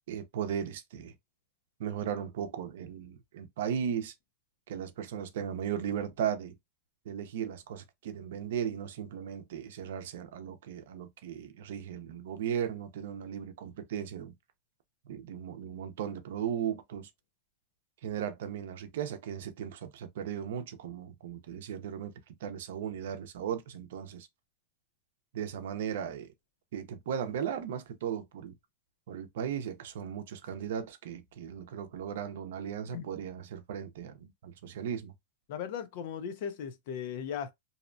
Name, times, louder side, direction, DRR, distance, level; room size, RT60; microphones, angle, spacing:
voice 1, 0.1-1.1 1.8-4.1 4.7-6.6 7.1-14.3 15.1-17.1 18.0-22.1 22.4-24.3 25.3-26.3 26.7-28.6 29.1-35.1, right 8 dB, 70° right, 0.6 m, -36 dB
voice 2, 35.5-37.5, left 8 dB, 50° left, 0.5 m, -37 dB
2.7 x 2.1 x 2.5 m
supercardioid pair, 165°, 0 cm